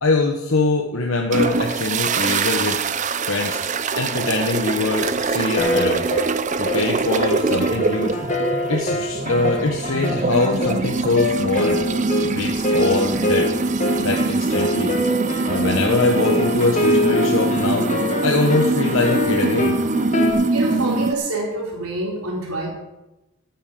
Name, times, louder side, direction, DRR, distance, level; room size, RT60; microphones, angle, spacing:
voice 1, 0.0-2.8 3.2-3.6 4.0-6.1 6.6-8.2 8.7-11.8 12.2-13.5 14.0-14.9 15.5-17.9 18.2-19.8, left 3 dB, 65° left, 1 dB, 1.1 m, -22 dB
sound 1, 1.3-21.1, right 3 dB, 35° right, 0.5 m, -23 dB
sound 2, 5.5-20.3, left 1 dB, 30° left, 1.6 m, -25 dB
voice 2, 20.5-22.7, right 2 dB, 90° right, -2 dB, 3.9 m, -26 dB
15.0 x 9.1 x 5.3 m, 0.98 s
head